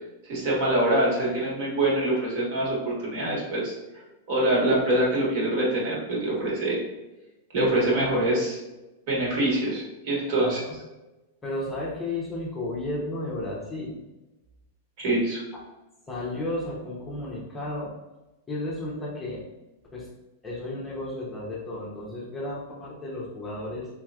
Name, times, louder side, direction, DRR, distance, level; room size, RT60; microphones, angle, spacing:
voice 1, 0.3-3.7 4.3-6.9 7.5-8.6 9.1-10.6 15.0-15.4, right 1 dB, 50° right, -4 dB, 1.4 m, -24 dB
voice 2, 10.4-10.7 11.4-14.0 15.5-15.6 16.1-17.9 18.5-19.4 19.9-20.1 20.4-23.9, left 1 dB, 10° left, -6 dB, 0.7 m, -33 dB
3.7 x 3.1 x 2.4 m, 1.0 s
supercardioid pair, 160°, 0 cm